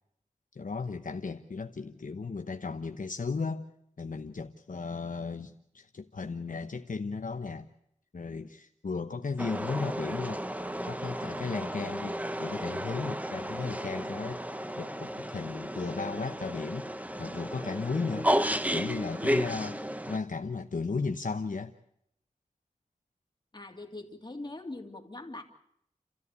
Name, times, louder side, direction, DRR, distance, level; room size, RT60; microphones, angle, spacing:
voice 1, 0.5-3.7 4.0-7.7 8.1-10.4 10.8-14.4 14.8-16.9 17.2-18.3 18.7-19.8 20.1-21.7, left 4 dB, 75° left, 6 dB, 1.0 m, -35 dB
sound 1, 9.4-20.2, equal, 10° right, 1.0 m, -33 dB
voice 2, 23.5-25.4, left 2 dB, 35° left, 3 dB, 2.8 m, -42 dB
29.5 x 14.0 x 8.3 m, 0.74 s
wide cardioid pair, 65°, 14 cm